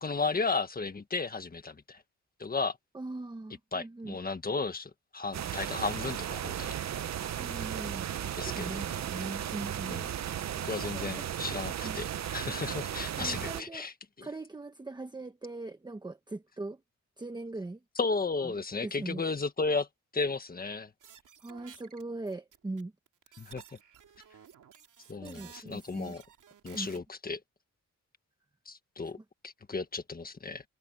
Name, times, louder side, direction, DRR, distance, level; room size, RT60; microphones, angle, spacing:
voice 1, 0.0-2.0 2.4-2.8 3.7-6.7 8.3-9.0 9.8-10.1 10.6-13.9 14.2-14.3 18.0-19.9 20.1-20.9 23.4-23.6 25.1-26.2 26.6-27.4 28.6-29.2 29.4-30.6, left 4 dB, 30° left, 1.6 m, -34 dB
voice 2, 2.9-4.2 7.4-10.0 10.9-11.3 11.8-12.0 13.2-13.9 14.2-16.8 17.2-17.8 18.4-18.5 18.8-19.2 21.4-22.9 25.1-26.1 26.7-26.9, right 2 dB, 15° right, 1.0 m, -40 dB
sound 1, 5.3-13.6, right 10 dB, 60° right, 0.7 m, -35 dB
sound 2, 21.0-22.8 23.1-27.0, right 8 dB, 80° right, 2.8 m, -54 dB
wide cardioid pair, 155°, 31 cm